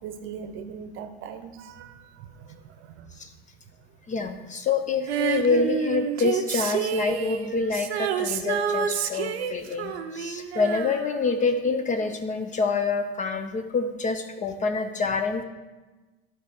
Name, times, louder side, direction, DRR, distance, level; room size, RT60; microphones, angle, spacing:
voice 1, 0.0-3.1, right 7 dB, 40° right, 9 dB, 0.8 m, -40 dB
voice 2, 4.1-15.4, left 4 dB, 25° left, 8 dB, 0.5 m, -27 dB
Female singing, 5.1-11.7 12.0-12.1, right 7 dB, 80° right, 0.7 m, -29 dB
11.5 x 4.1 x 3.6 m, 1.2 s
hypercardioid pair, 95°, 31 cm